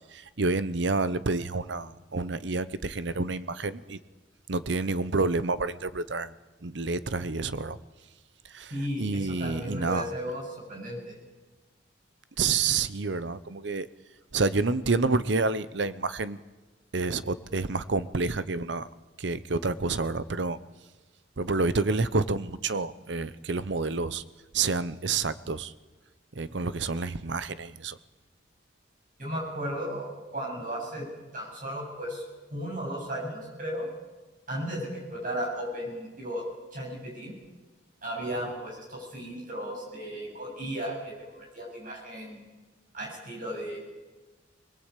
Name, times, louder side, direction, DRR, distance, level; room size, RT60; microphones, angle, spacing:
voice 1, 0.1-4.0 4.5-6.3 6.6-7.8 8.5-8.7 9.0-10.1 12.4-13.9 14.3-16.4 16.9-18.9 19.2-20.6 21.4-24.2 24.5-25.7 26.4-28.0, right 3 dB, 70° right, 15 dB, 0.8 m, -28 dB
voice 2, 8.7-10.4 10.7-11.1 29.2-31.1 31.3-32.2 32.5-33.9 34.5-36.5 36.7-37.3 38.0-42.4 42.9-43.8, equal, 45° right, -2 dB, 7.9 m, -35 dB
22.0 x 20.5 x 8.3 m, 1.2 s
head